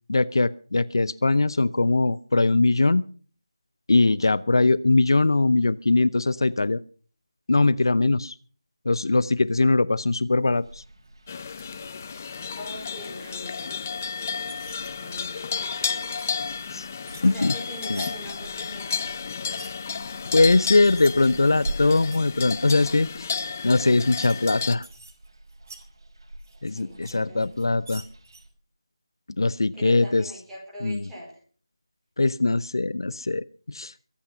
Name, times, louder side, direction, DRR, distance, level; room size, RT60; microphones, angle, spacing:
voice 1, 0.1-3.0 3.9-6.8 7.5-8.4 8.8-10.8 16.7-16.9 17.2-17.5 17.9-18.0 20.3-23.3 23.6-24.9 26.6-28.0 29.4-30.2 30.8-31.0 32.2-34.0, left 3 dB, 65° left, 18 dB, 0.7 m, -21 dB
Derelict Basement.L, 10.6-28.5, right 1 dB, 60° right, 5.3 m, -44 dB
sound 1, 11.3-24.8, left 6 dB, 30° left, 0.7 m, -32 dB
sound 2, 11.4-11.6 12.5-13.1 14.1-14.9 15.3-16.3 16.6-18.1 19.3-19.7 20.3-20.4 20.6-22.2 22.7-22.9 23.3-23.4 23.9-24.3 24.6-25.8 26.4-27.1 27.4-28.4, right 3 dB, 35° right, 3.3 m, -47 dB
voice 2, 12.6-13.8 14.2-14.4 14.8-16.1 17.2-19.0 26.7-27.5 29.7-31.4, equal, 5° right, -5 dB, 4.3 m, -42 dB
23.0 x 8.7 x 5.6 m, 0.42 s
figure-of-eight pair, 165°, 3 cm